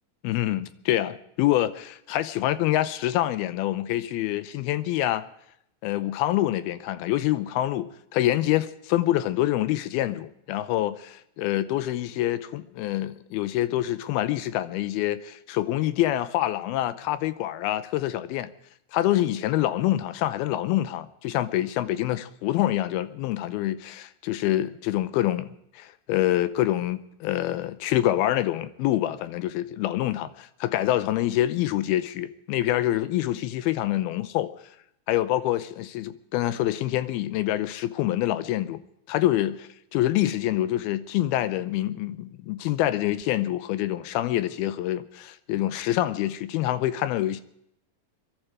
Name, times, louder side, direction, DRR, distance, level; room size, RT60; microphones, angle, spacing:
voice 1, 0.2-5.2 5.8-18.5 18.9-25.5 25.8-34.5 35.1-38.8 39.1-47.4, left 14 dB, 80° left, 2.6 m, -26 dB
23.0 x 12.5 x 4.9 m
omnidirectional pair, 4.5 m